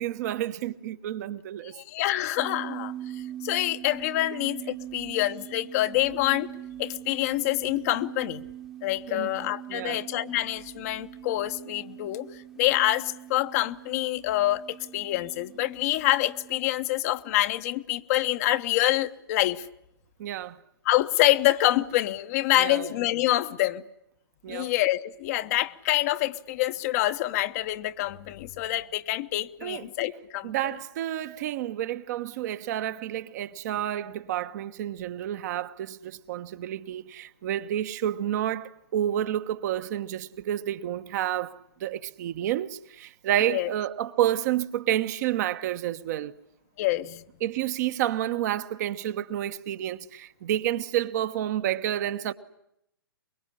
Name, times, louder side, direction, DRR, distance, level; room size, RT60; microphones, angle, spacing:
voice 1, 0.0-1.7 9.1-10.0 20.2-20.6 22.5-22.9 24.4-24.7 29.6-29.9 30.4-46.3 47.4-52.3, right 12 dB, 45° right, 1.2 m, -30 dB
voice 2, 1.7-2.9 3.4-6.5 6.8-8.4 8.8-12.3 12.6-19.6 20.8-23.8 24.5-30.5 43.5-43.7 46.8-47.2, left 16 dB, 40° left, 1.0 m, -26 dB
sound 1, 2.4-16.5, right 11 dB, 5° right, 1.1 m, -42 dB
24.0 x 22.0 x 9.9 m
figure-of-eight pair, 120°, 12 cm